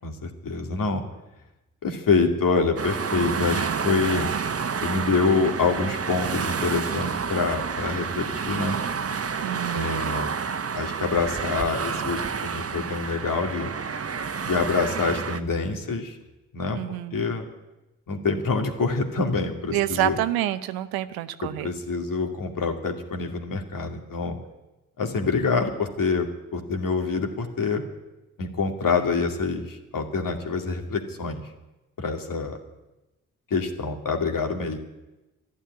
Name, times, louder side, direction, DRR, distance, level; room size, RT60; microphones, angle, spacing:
voice 1, 0.0-1.0 1.8-4.3 4.8-8.8 9.7-10.3 10.7-13.7 14.4-16.2 16.5-16.8 17.1-17.5 18.1-20.2 21.4-24.4 25.0-27.8 28.4-31.4 32.0-32.6 33.5-34.8, left 4 dB, 65° left, 4 dB, 2.5 m, -26 dB
sound 1, 2.8-15.4, right 6 dB, 40° right, 1.1 m, -29 dB
voice 2, 9.4-10.0 16.7-17.3 19.7-21.7, right 14 dB, 90° right, 13 dB, 0.7 m, -28 dB
12.5 x 11.5 x 9.8 m, 1.0 s
supercardioid pair, 40°, 36 cm